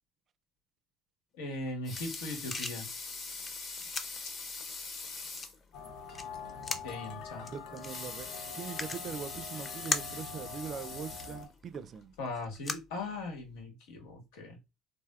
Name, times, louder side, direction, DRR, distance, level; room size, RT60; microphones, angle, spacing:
voice 1, 1.4-2.9 6.8-7.5 12.2-14.6, left 2 dB, 90° left, 1.2 m, -39 dB
sound 1, 1.6-13.6, left 3 dB, 25° left, 0.4 m, -42 dB
Water tap faucet / Sink (filling or washing) / Liquid, 1.7-5.6 6.1-6.2 6.5-6.6 7.7-11.8 12.4-12.5, left 4 dB, 40° left, 0.9 m, -43 dB
sound 2, 5.7-11.5, left 5 dB, 70° left, 0.6 m, -45 dB
voice 2, 7.5-8.3 8.5-12.1, right 6 dB, 40° right, 0.3 m, -42 dB
3.4 x 2.5 x 2.3 m
cardioid pair, 115°, 0 cm